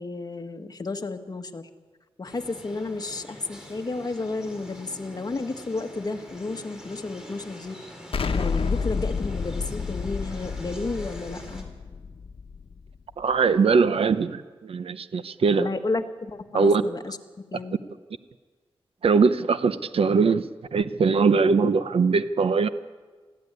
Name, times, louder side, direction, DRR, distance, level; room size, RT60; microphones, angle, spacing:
voice 1, 0.0-1.7 2.2-7.7 8.2-11.7 15.6-17.8, left 3 dB, 40° left, 7 dB, 1.5 m, -32 dB
sound 1, 2.2-11.6, equal, 5° right, 4.0 m, -44 dB
Explosion, 8.1-13.0, left 5 dB, 70° left, 1.1 m, -30 dB
voice 2, 13.2-15.7 16.5-16.8 19.0-22.7, right 5 dB, 75° right, 12 dB, 0.8 m, -21 dB
22.5 x 15.5 x 9.7 m, 1.4 s
wide cardioid pair, 105°, 10 cm